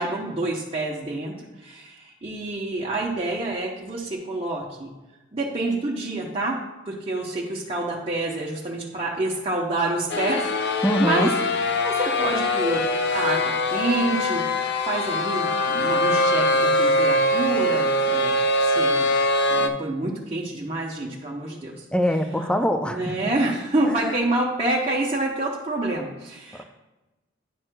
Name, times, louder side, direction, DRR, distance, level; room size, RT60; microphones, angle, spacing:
voice 1, 0.0-1.3 1.6-4.9 5.3-6.6 6.9-11.3 11.8-13.4 13.7-14.4 14.8-19.1 19.5-21.8 22.8-26.6, right 2 dB, 30° right, -4 dB, 0.8 m, -27 dB
sound 1, 10.1-19.7, left 1 dB, 60° left, 0.5 m, -22 dB
voice 2, 10.8-11.3 21.9-23.3 23.9-24.0, equal, 5° left, 7 dB, 0.4 m, -23 dB
10.0 x 6.1 x 2.2 m, 1.1 s
head